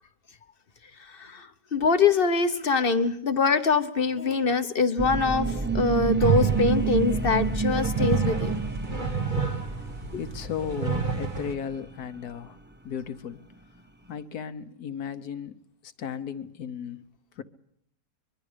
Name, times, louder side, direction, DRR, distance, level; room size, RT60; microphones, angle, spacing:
voice 1, 1.0-8.5 10.1-10.2, left 4 dB, 40° left, 9 dB, 1.0 m, -24 dB
sound 1, 5.0-11.8 12.0-12.1, right 4 dB, 15° right, 0.3 m, -29 dB
sound 2, 6.2-11.5, right 5 dB, 30° right, 1.2 m, -29 dB
voice 2, 10.1-12.6 12.8-13.4 14.1-15.5 15.8-17.0 17.4-17.5, left 7 dB, 65° left, 11 dB, 1.5 m, -35 dB
24.5 x 22.5 x 5.1 m, 0.72 s
omnidirectional pair, 1.8 m